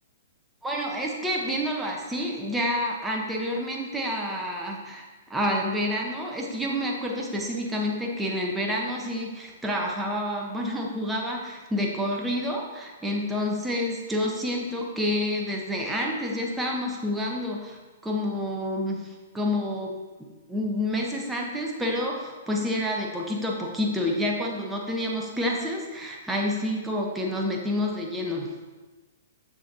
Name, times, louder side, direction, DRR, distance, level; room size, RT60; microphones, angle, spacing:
voice 1, 0.6-17.8 18.0-19.9 20.5-28.5, left 1 dB, 5° right, -1 dB, 1.2 m, -28 dB
7.2 x 6.3 x 2.9 m, 1.3 s
hypercardioid pair, 120°, 0 cm